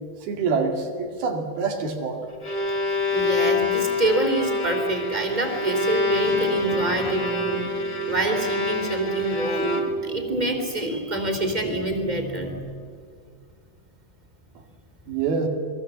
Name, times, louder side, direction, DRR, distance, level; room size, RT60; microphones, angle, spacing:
voice 1, 0.2-2.2 15.1-15.5, right 5 dB, 80° right, 3 dB, 4.3 m, -26 dB
Bowed string instrument, 2.2-10.2, left 2 dB, 20° left, 1.9 m, -26 dB
voice 2, 3.1-7.6 8.1-12.7, right 1 dB, 10° right, 3 dB, 2.7 m, -26 dB
Guitar, 6.2-12.7, equal, 35° right, 2.3 m, -39 dB
29.0 x 21.5 x 7.5 m, 2.1 s
omnidirectional pair, 4.3 m